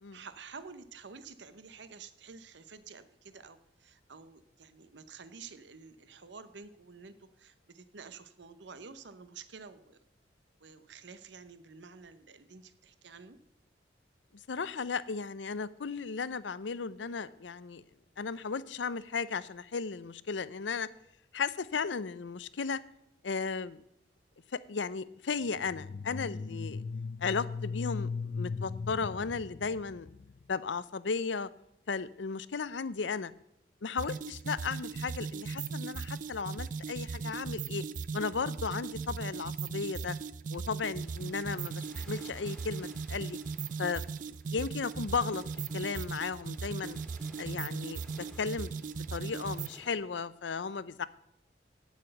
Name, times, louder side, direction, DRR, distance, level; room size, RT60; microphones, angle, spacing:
voice 1, 0.1-10.0 10.6-13.4, right 5 dB, 75° right, 13 dB, 0.8 m, -50 dB
voice 2, 14.5-17.8 18.2-20.9 21.3-22.8 23.2-23.8 24.5-26.8 27.2-30.1 30.5-31.5 31.9-33.3 33.8-37.8 38.1-40.2 40.5-43.4 43.8-44.0 44.3-45.4 45.7-47.0 47.4-51.1, left 5 dB, 85° left, 17 dB, 0.6 m, -35 dB
sound 1, 25.6-30.4, left 4 dB, 40° left, 0.3 m, -38 dB
sound 2, 34.0-49.8, right 5 dB, 45° right, 0.4 m, -38 dB
sound 3, 40.9-50.0, left 1 dB, 5° left, 1.8 m, -58 dB
8.9 x 8.2 x 7.8 m, 0.80 s
head